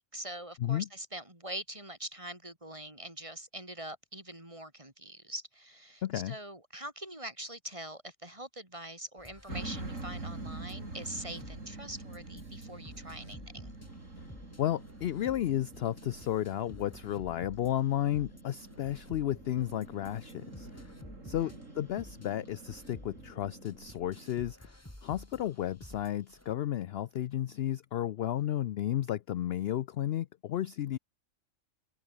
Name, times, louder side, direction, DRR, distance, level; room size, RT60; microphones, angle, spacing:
voice 1, 0.0-13.8 21.2-21.6, right 1 dB, 25° right, 4.5 m, -43 dB
voice 2, 6.0-6.3 14.6-20.7 21.2-24.7 25.0-31.0, left 12 dB, 60° left, 0.7 m, -33 dB
sound 1, 9.2-26.6, left 1 dB, 10° left, 2.8 m, -52 dB
sound 2, 9.5-24.3, right 2 dB, 70° right, 4.9 m, -46 dB
sound 3, 14.6-24.7, left 2 dB, 80° left, 6.6 m, -64 dB
omnidirectional pair, 1.3 m